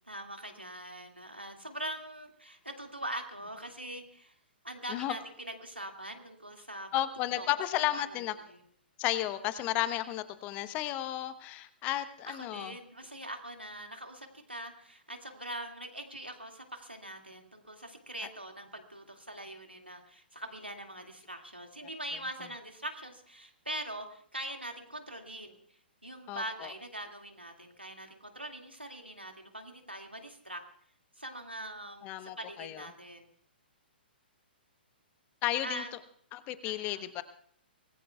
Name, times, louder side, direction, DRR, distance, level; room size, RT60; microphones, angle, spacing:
voice 1, 0.0-4.4 4.6-7.5 7.9-8.6 12.2-30.6 31.2-33.3 35.6-35.9 36.6-37.1, right 1 dB, 90° right, 4 dB, 2.2 m, -43 dB
voice 2, 6.9-8.3 9.0-12.7 26.3-26.7 32.0-32.9 35.4-35.8 36.3-37.2, left 14 dB, 25° left, 13 dB, 1.0 m, -33 dB
25.0 x 19.5 x 2.3 m, 0.63 s
figure-of-eight pair, 120°, 6 cm